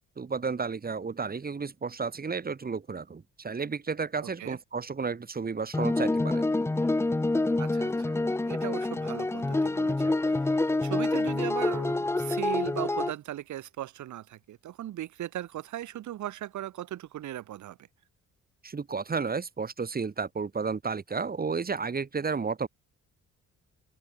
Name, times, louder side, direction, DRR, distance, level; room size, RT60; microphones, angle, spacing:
voice 1, 0.2-6.4 18.6-22.7, right 5 dB, 30° right, 2.3 m, -32 dB
voice 2, 4.2-4.6 7.6-8.2 8.4-17.9, right 13 dB, 75° right, 1.7 m, -38 dB
sound 1, 5.7-13.1, left 2 dB, 10° left, 0.5 m, -27 dB
cardioid pair, 90°, 30 cm